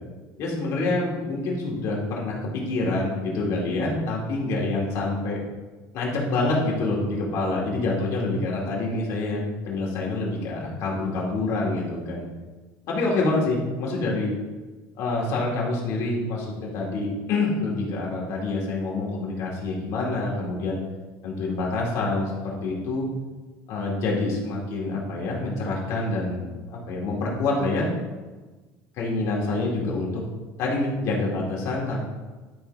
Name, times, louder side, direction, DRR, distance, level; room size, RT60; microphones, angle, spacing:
voice 1, 0.4-5.4 5.9-12.3 12.9-14.3 15.0-20.8 21.2-23.1 23.7-26.4 26.7-27.9 29.0-30.2 30.6-32.0, left 2 dB, 50° left, -3 dB, 2.3 m, -26 dB
11.5 x 5.6 x 3.4 m, 1.3 s
cardioid pair, 170°, 7 cm